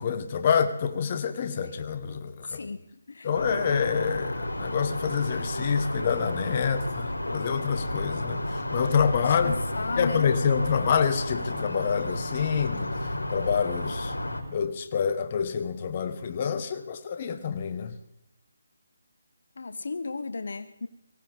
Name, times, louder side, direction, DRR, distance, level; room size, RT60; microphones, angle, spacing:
voice 1, 0.0-2.7 3.2-9.5 10.0-14.1 14.5-18.0, left 6 dB, 35° left, 9 dB, 1.3 m, -27 dB
voice 2, 2.5-2.8 3.1-3.3 9.2-10.3 19.6-20.9, left 3 dB, 65° left, 11 dB, 0.8 m, -34 dB
sound 1, 3.3-14.4, left 1 dB, 90° left, 4.4 m, -32 dB
23.5 x 17.0 x 3.6 m, 0.85 s
figure-of-eight pair, 160°, 0 cm